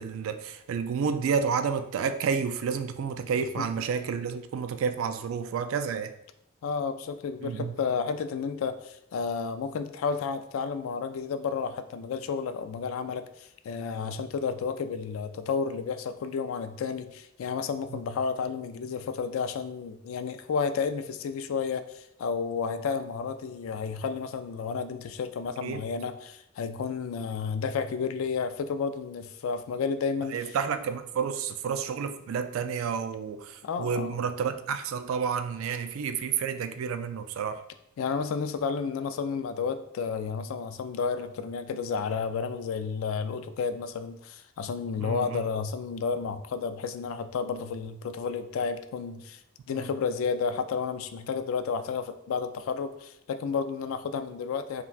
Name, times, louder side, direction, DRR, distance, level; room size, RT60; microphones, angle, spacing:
voice 1, 0.0-6.1 7.4-7.7 17.9-18.0 25.6-25.8 30.3-37.6 45.0-45.5 49.7-49.9, right 6 dB, 80° right, 0.3 m, -30 dB
voice 2, 6.6-30.6 33.6-34.2 38.0-49.4 49.7-54.8, left 5 dB, 80° left, 0.3 m, -31 dB
5.6 x 2.2 x 2.3 m
head